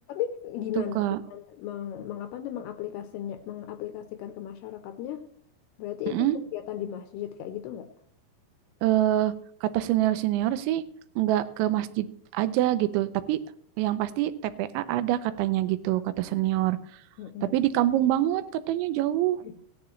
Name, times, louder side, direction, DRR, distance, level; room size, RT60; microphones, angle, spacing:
voice 1, 0.1-1.0 1.3-5.2 5.8-7.9 17.2-17.6 19.4-19.5, left 11 dB, 80° left, 9 dB, 2.4 m, -35 dB
voice 2, 0.8-1.2 6.1-6.4 8.8-9.3 9.6-10.8 11.2-13.4 13.8-16.8 17.4-19.4, right 13 dB, 90° right, 13 dB, 3.1 m, -25 dB
17.5 x 10.5 x 3.2 m, 0.63 s
omnidirectional pair, 5.2 m